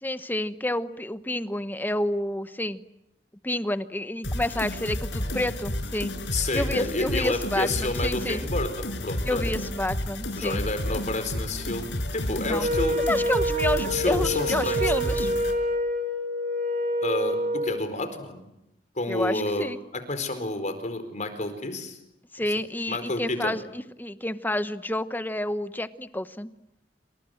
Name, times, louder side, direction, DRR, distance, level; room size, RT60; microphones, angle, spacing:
voice 1, 0.0-2.8 3.4-6.1 6.5-8.4 9.2-10.6 12.4-12.7 13.1-15.3 19.1-19.8 22.3-26.5, left 1 dB, 10° left, 12 dB, 1.0 m, -29 dB
sound 1, 4.2-15.5, left 1 dB, 90° left, 5.1 m, -31 dB
voice 2, 6.3-9.5 10.4-13.0 13.9-14.9 17.0-18.5 19.0-22.0 22.9-23.6, left 2 dB, 45° left, 8 dB, 4.4 m, -30 dB
Wind instrument woodwind instrument, 12.6-17.8, equal, 50° right, 4.8 m, -27 dB
28.0 x 25.5 x 7.9 m, 0.86 s
head